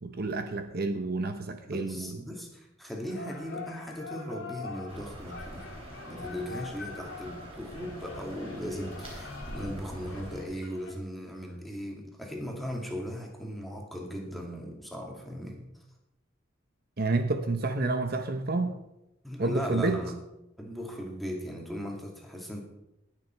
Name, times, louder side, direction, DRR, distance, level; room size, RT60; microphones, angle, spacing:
voice 1, 0.0-2.2 17.0-18.8 19.4-20.0, right 3 dB, 50° right, 7 dB, 0.9 m, -29 dB
voice 2, 1.6-5.7 6.1-15.7 19.2-20.1 20.6-22.6, equal, ahead, 0 dB, 2.3 m, -38 dB
sound 1, 3.1-10.9, left 4 dB, 85° left, 2.6 m, -45 dB
sound 2, 4.9-10.4, equal, 30° right, 4.1 m, -44 dB
19.0 x 6.9 x 4.6 m, 0.88 s
head